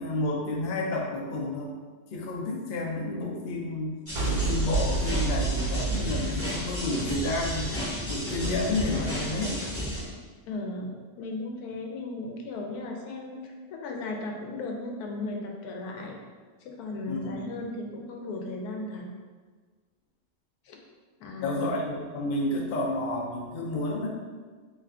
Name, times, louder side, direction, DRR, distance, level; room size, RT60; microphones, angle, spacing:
voice 1, 0.0-1.7 2.1-7.7 8.1-9.6 17.1-17.4 21.4-24.1, left 2 dB, 55° left, -2 dB, 0.6 m, -30 dB
sound 1, 4.1-10.0, left 1 dB, 15° left, 0.6 m, -32 dB
sound 2, 4.2-7.4, right 4 dB, 80° right, 1.2 m, -29 dB
voice 2, 10.5-16.2 16.6-19.0 20.6-20.8 21.2-21.7, left 2 dB, 90° left, 1 dB, 1.2 m, -36 dB
3.3 x 3.2 x 3.6 m, 1.5 s
omnidirectional pair, 1.6 m